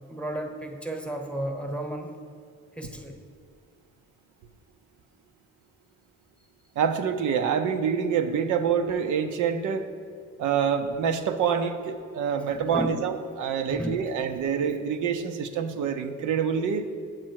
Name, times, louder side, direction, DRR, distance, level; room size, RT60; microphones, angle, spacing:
voice 1, 0.0-2.1 2.8-3.2 12.5-13.1 13.7-14.0, equal, 5° left, 3 dB, 1.0 m, -33 dB
voice 2, 6.8-9.8 10.4-16.9, right 7 dB, 80° right, 7 dB, 0.7 m, -26 dB
7.6 x 7.2 x 4.6 m, 2.3 s
cardioid pair, 90°, 30 cm